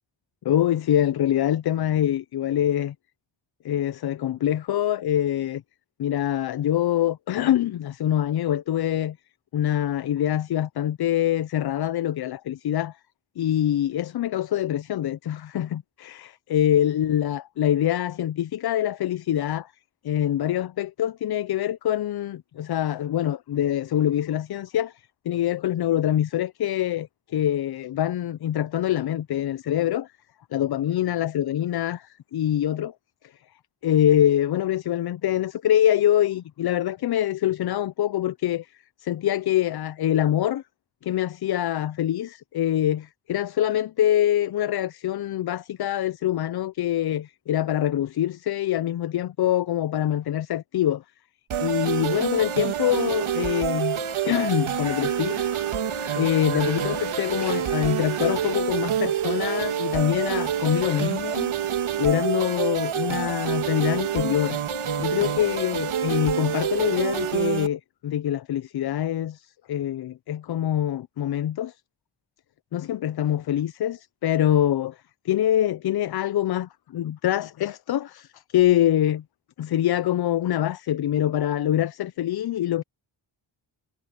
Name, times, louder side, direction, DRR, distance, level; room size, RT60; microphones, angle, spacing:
voice 1, 0.4-2.9 3.6-5.6 6.0-9.2 9.5-13.0 13.4-19.7 20.0-30.1 30.5-32.9 33.8-38.7 39.0-40.6 41.0-51.0 51.6-55.5 56.1-61.5 62.0-64.6 65.0-71.8 72.7-75.0 75.2-79.2 79.6-82.8, left 11 dB, 55° left, 0.5 m, -24 dB
sound 1, 51.5-67.7, right 9 dB, 80° right, 2.5 m, -27 dB
sound 2, 52.7-61.4, right 4 dB, 35° right, 5.9 m, -44 dB
wide cardioid pair, 125°, 48 cm